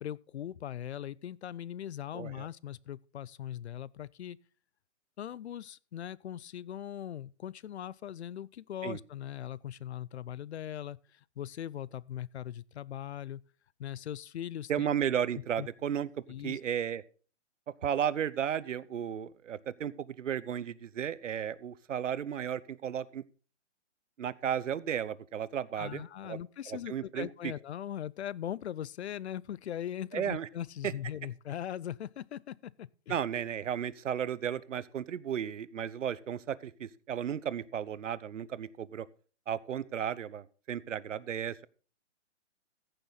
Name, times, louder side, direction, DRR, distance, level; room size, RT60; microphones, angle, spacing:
voice 1, 0.0-4.4 5.2-13.4 13.8-14.9 15.6-15.7 16.3-16.6 25.8-33.2, left 10 dB, 65° left, 0.5 m, -40 dB
voice 2, 2.1-2.5 8.8-9.0 14.7-16.1 16.4-17.0 17.8-23.2 24.2-26.4 26.7-27.3 30.1-30.5 30.8-30.9 33.1-39.1 39.5-41.7, right 9 dB, 85° right, 0.8 m, -34 dB
15.0 x 6.8 x 4.0 m
hypercardioid pair, 170°, 36 cm